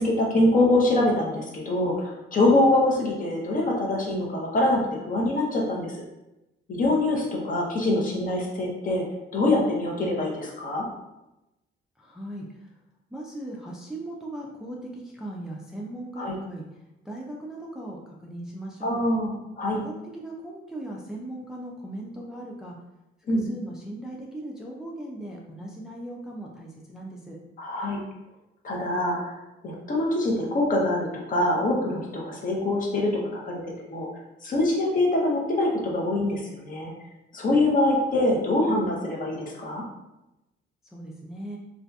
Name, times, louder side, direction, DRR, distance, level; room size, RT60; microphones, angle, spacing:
voice 1, 0.0-5.9 6.7-9.0 9.3-10.9 16.2-16.3 18.8-19.3 19.6-19.8 23.3-23.4 27.6-28.0 28.6-29.3 29.6-33.6 33.9-34.1 34.4-36.9 37.3-39.8, left 1 dB, 45° left, -2 dB, 0.7 m, -24 dB
voice 2, 12.0-12.7 13.1-16.7 17.0-19.0 19.7-22.8 23.3-27.4 40.9-41.6, right 1 dB, 5° right, -2 dB, 0.3 m, -38 dB
2.6 x 2.4 x 2.2 m, 0.95 s
cardioid pair, 90°, 20 cm